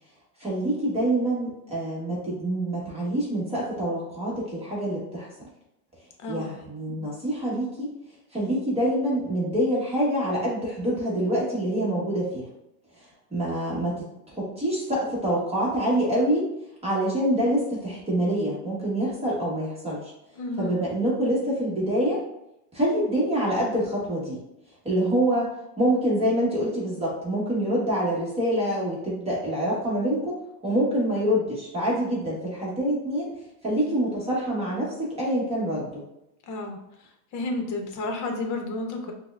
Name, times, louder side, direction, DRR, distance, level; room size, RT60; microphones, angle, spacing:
voice 1, 0.4-5.3 6.3-7.9 8.3-12.5 13.3-16.5 16.8-20.1 20.6-22.2 22.7-24.4 24.8-25.5 25.8-30.3 30.6-33.3 33.6-36.0, right 1 dB, 15° right, -6 dB, 0.9 m, -26 dB
voice 2, 20.4-20.8 36.5-36.8 37.3-39.1, left 2 dB, 45° left, 3 dB, 0.8 m, -31 dB
5.8 x 2.1 x 2.3 m, 0.84 s
supercardioid pair, 135°, 43 cm